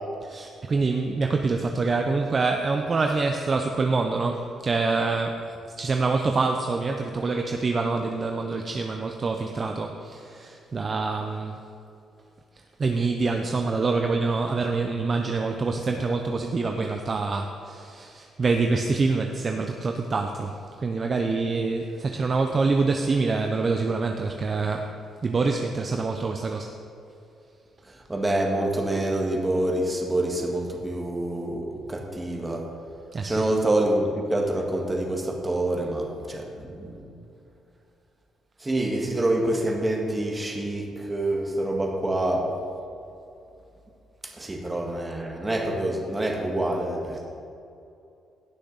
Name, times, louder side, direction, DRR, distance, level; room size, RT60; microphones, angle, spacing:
voice 1, 0.2-11.6 12.8-24.9 25.2-26.7 33.1-33.5 44.4-44.5, right 3 dB, 35° right, 4 dB, 0.6 m, -26 dB
voice 2, 28.1-32.7 33.2-37.0 38.6-42.5 44.2-47.2, right 1 dB, 20° right, 1 dB, 1.7 m, -26 dB
16.0 x 6.5 x 4.0 m, 2.6 s
cardioid pair, 90°, 0 cm